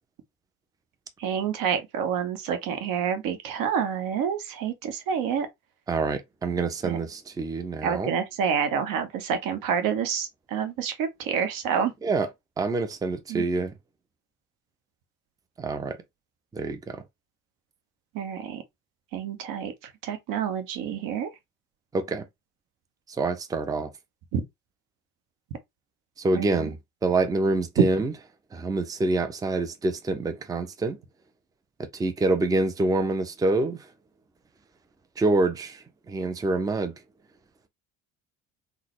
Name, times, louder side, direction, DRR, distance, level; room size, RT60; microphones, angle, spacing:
voice 1, 1.2-5.5 6.8-7.0 7.8-11.9 13.3-13.4 18.1-18.6 19.1-19.7 20.0-21.3 24.3-24.4 26.4-26.7, right 7 dB, 50° right, 1.0 m, -28 dB
voice 2, 5.9-8.2 12.0-12.3 12.6-13.7 15.6-16.0 16.5-17.0 21.9-22.2 23.2-23.9 26.2-26.8 27.0-28.1 28.5-31.0 31.9-33.8 35.2-36.9, right 2 dB, 10° right, 0.5 m, -26 dB
3.8 x 2.2 x 2.9 m
figure-of-eight pair, 55°, 42 cm